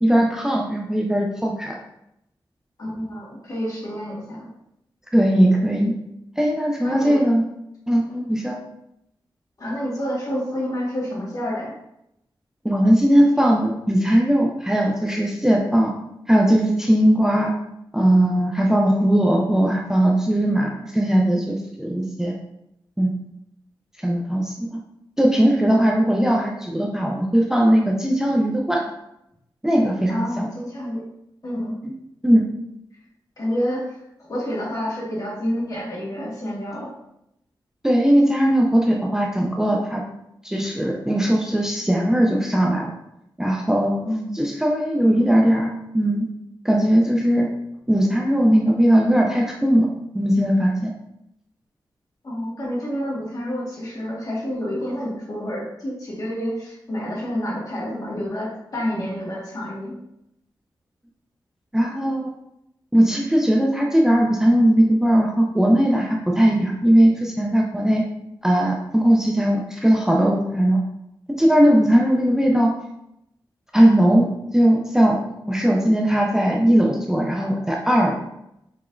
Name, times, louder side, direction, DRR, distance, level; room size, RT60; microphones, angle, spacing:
voice 1, 0.0-1.8 5.1-5.9 6.4-7.4 7.9-8.0 8.3-8.6 12.6-16.0 16.3-17.5 17.9-22.3 23.0-23.1 24.0-24.8 25.2-28.9 29.6-30.5 31.8-31.9 32.2-32.4 37.8-40.0 40.4-43.0 43.4-44.0 44.3-46.3 46.6-47.5 47.9-50.9 61.7-62.3 62.9-68.0 68.4-70.8 71.4-72.7 73.7-74.3 74.5-75.2 75.5-78.2, right 1 dB, 5° right, -1 dB, 0.5 m, -19 dB
voice 2, 2.8-4.5 6.8-7.2 8.1-8.2 9.6-11.7 25.6-25.8 30.1-31.0 31.4-31.8 33.4-34.0 34.3-36.9 44.0-44.4 52.2-59.9, equal, 45° left, -4 dB, 1.5 m, -28 dB
4.9 x 3.4 x 2.5 m, 0.81 s
wide cardioid pair, 120°, 8 cm